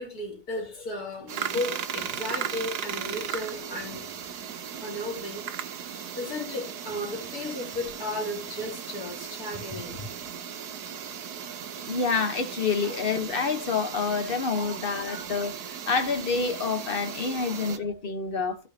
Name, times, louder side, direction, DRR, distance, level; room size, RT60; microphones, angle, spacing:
voice 1, 0.0-4.1 4.8-5.4 5.9-10.3 12.8-13.0 14.0-15.3 17.2-17.8, left 1 dB, 70° left, 3.2 m, -35 dB
sound 1, 1.3-17.8, right 8 dB, 85° right, 1.4 m, -37 dB
voice 2, 11.8-15.6 15.9-18.7, left 5 dB, 40° left, 1.1 m, -28 dB
15.0 x 5.1 x 2.8 m
omnidirectional pair, 1.7 m